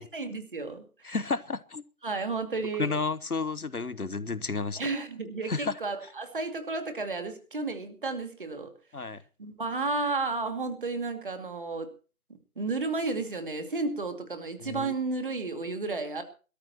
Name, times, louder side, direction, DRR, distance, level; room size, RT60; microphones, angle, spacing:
voice 1, 0.0-1.2 2.0-2.9 4.8-8.7 9.4-11.9 12.6-16.2, right 3 dB, 35° right, 7 dB, 2.5 m, -32 dB
voice 2, 1.0-1.8 2.8-4.8 5.5-5.7 8.9-9.2 14.6-14.9, left 4 dB, 85° left, 16 dB, 1.2 m, -31 dB
23.0 x 13.5 x 3.0 m, 0.36 s
figure-of-eight pair, 160°, 43 cm